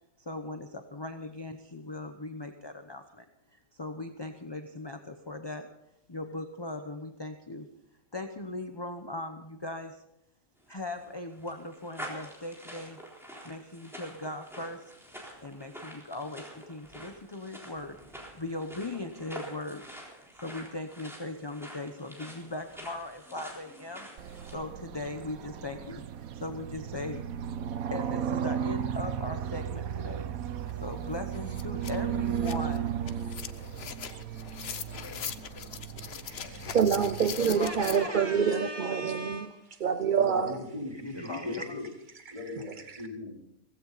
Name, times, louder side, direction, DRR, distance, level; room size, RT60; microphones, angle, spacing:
voice 1, 0.2-3.2 3.7-5.7 6.1-7.7 8.1-10.0 10.7-13.0 13.4-14.9 15.4-19.8 20.4-24.1 24.5-26.0 26.3-27.2 27.9-30.3 30.8-33.0 37.5-39.7 40.9-41.8, left 2 dB, 20° left, 6 dB, 0.7 m, -39 dB
sound 1, 10.7-24.5, equal, ahead, 3.8 m, -47 dB
sound 2, 24.2-37.9, right 8 dB, 75° right, 1.2 m, -35 dB
sound 3, 30.7-30.8 31.1-38.0, left 8 dB, 50° left, 0.9 m, -41 dB
voice 2, 36.2-39.5 39.8-40.6 42.3-42.4 42.9-43.0, right 7 dB, 50° right, 9 dB, 0.6 m, -27 dB
voice 3, 40.1-41.8 42.3-43.4, left 2 dB, 20° right, -3 dB, 4.4 m, -39 dB
17.0 x 16.0 x 4.1 m, 0.80 s
omnidirectional pair, 1.5 m